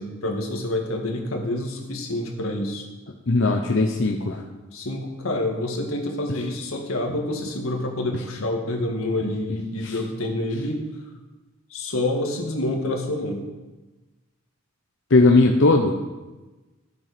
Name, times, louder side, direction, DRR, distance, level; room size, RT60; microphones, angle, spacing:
voice 1, 0.0-2.8 4.7-10.8 11.7-13.4, left 1 dB, 90° left, 2 dB, 1.9 m, -27 dB
voice 2, 3.3-4.4 9.8-9.9 15.1-15.9, left 3 dB, 65° left, 2 dB, 0.8 m, -18 dB
13.0 x 7.4 x 5.1 m, 1.2 s
head